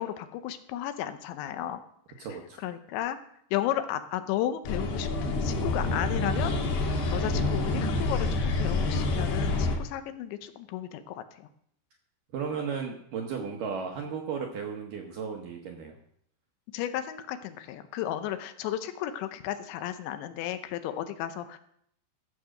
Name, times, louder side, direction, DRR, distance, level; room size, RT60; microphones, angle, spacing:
voice 1, 0.0-1.8 2.2-2.3 2.6-3.2 3.5-6.5 7.1-11.5 16.7-21.6, left 11 dB, 85° left, 10 dB, 3.1 m, -33 dB
voice 2, 2.2-2.6 12.3-15.9, right 6 dB, 70° right, 1 dB, 2.1 m, -35 dB
sound 1, 4.7-9.8, left 2 dB, 60° left, 3.3 m, -27 dB
14.5 x 6.0 x 6.5 m, 0.69 s
omnidirectional pair, 5.1 m